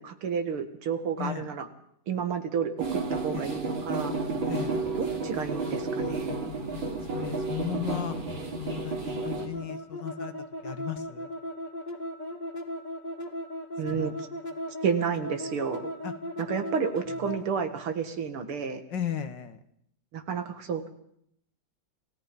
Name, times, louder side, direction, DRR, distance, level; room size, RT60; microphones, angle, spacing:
voice 1, 0.0-1.7 2.1-4.1 5.0-6.4 13.8-14.1 14.8-15.9 16.5-18.8 20.1-20.9, right 6 dB, 80° right, 8 dB, 2.8 m, -31 dB
voice 2, 1.2-1.5 3.3-3.6 4.4-4.8 7.0-8.2 8.6-10.3 10.6-11.3 13.9-14.1 16.0-16.1 17.2-17.3 18.9-19.6, left 9 dB, 60° left, 10 dB, 1.9 m, -36 dB
sound 1, 2.8-9.5, right 3 dB, 60° right, 4.3 m, -31 dB
sound 2, 9.2-17.5, equal, 20° left, 1.9 m, -37 dB
28.5 x 17.5 x 5.4 m, 0.70 s
omnidirectional pair, 2.4 m